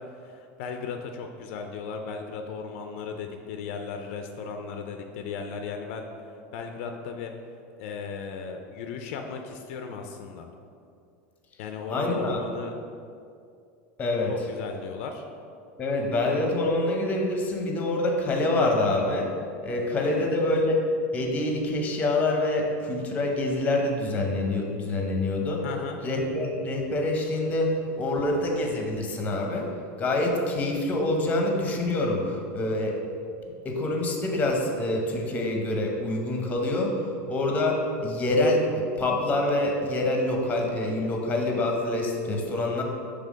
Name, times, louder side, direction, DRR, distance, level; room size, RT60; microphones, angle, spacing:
voice 1, 0.1-7.3 7.8-10.5 11.6-12.7 14.3-15.3 19.7-20.4 25.6-26.0, left 5 dB, 65° left, 5 dB, 0.4 m, -36 dB
voice 2, 11.9-12.4 14.0-14.3 15.8-19.3 19.6-20.8 21.1-25.6 26.0-27.7 28.0-29.6 30.0-32.2 32.5-33.0 33.6-36.9 37.3-42.8, left 2 dB, 20° left, 1 dB, 0.8 m, -26 dB
5.5 x 3.4 x 5.0 m, 2.4 s
supercardioid pair, 145°, 7 cm